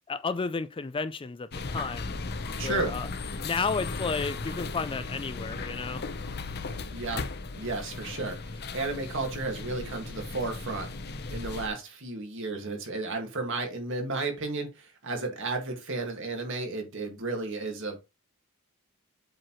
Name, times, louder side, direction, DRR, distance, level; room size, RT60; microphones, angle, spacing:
voice 1, 0.1-2.1 2.6-3.1 3.4-6.0, left 4 dB, 25° left, 0.4 m, -32 dB
sound 1, 1.5-11.7, left 3 dB, 50° left, 0.7 m, -36 dB
voice 2, 2.6-2.9 6.9-7.2 7.6-10.9 11.3-18.0, right 3 dB, 60° right, 1.9 m, -33 dB
7.6 x 4.5 x 3.0 m
head